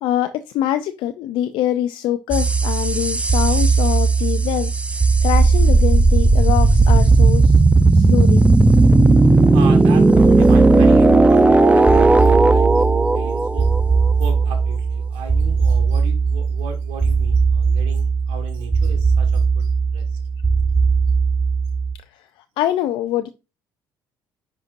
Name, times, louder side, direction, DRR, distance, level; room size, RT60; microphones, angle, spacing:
voice 1, 0.0-7.6 7.9-8.5 22.1-22.3 22.6-23.3, left 12 dB, 65° left, 0.5 m, -24 dB
sound 1, 2.3-21.9, right 3 dB, 15° right, 0.6 m, -15 dB
voice 2, 9.5-13.7 14.2-20.2, right 5 dB, 75° right, 1.7 m, -36 dB
10.0 x 4.3 x 2.6 m
hypercardioid pair, 60°, 9 cm